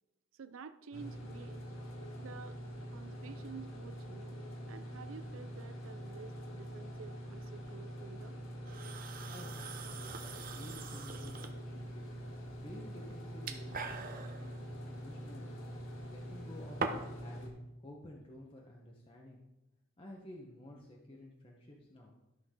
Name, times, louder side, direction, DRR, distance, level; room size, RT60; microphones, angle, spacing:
voice 1, 0.3-1.7 2.2-2.6 2.9-8.4, right 5 dB, 75° right, 12 dB, 0.5 m, -51 dB
sound 1, 0.9-17.5, equal, 80° left, 1.7 m, -45 dB
sound 2, 8.7-17.3, right 4 dB, 45° right, 0.8 m, -45 dB
voice 2, 8.9-12.1 12.6-15.6 16.1-17.5 17.8-19.4 20.0-22.1, left 1 dB, 25° left, -2 dB, 1.0 m, -52 dB
13.0 x 6.1 x 3.8 m, 0.97 s
head